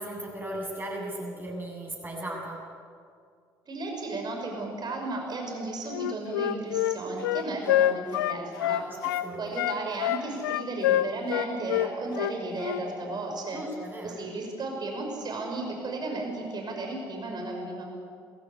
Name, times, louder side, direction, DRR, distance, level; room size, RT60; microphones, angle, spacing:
voice 1, 0.0-2.6 8.6-9.5 13.5-14.2, right 1 dB, 15° right, -1 dB, 7.8 m, -37 dB
voice 2, 3.7-8.8 9.4-13.6 14.0-17.8, right 2 dB, 40° right, 2 dB, 5.9 m, -34 dB
Wind instrument woodwind instrument, 5.9-9.3 9.5-12.8, left 13 dB, 70° left, 0.6 m, -26 dB
21.5 x 16.5 x 9.8 m, 2.2 s
figure-of-eight pair, 50°, 11 cm